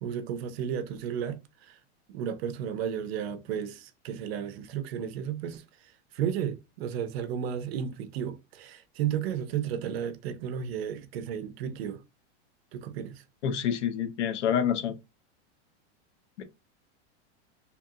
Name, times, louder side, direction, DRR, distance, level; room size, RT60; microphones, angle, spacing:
voice 1, 0.0-1.8 2.1-12.0 12.7-13.2, right 8 dB, 60° right, 0.5 m, -33 dB
voice 2, 13.4-14.9 16.4-16.5, left 8 dB, 85° left, 0.8 m, -27 dB
2.8 x 2.5 x 2.6 m
supercardioid pair, 165°, 34 cm